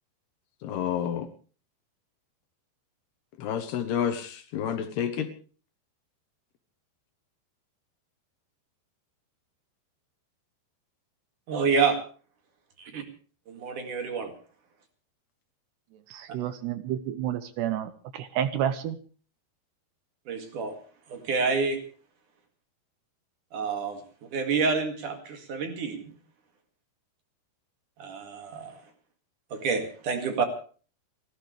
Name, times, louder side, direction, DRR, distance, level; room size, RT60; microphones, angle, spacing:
voice 1, 0.6-1.3 3.4-5.3, left 9 dB, 70° left, 3.0 m, -29 dB
voice 2, 11.5-12.0 12.8-13.0 13.5-14.3 20.3-20.7 21.1-21.8 23.5-24.0 24.3-26.1 28.0-28.8 29.5-30.4, right 5 dB, 50° right, 3.2 m, -28 dB
voice 3, 16.1-19.0, right 10 dB, 75° right, 2.8 m, -30 dB
29.0 x 13.5 x 3.3 m
omnidirectional pair, 5.2 m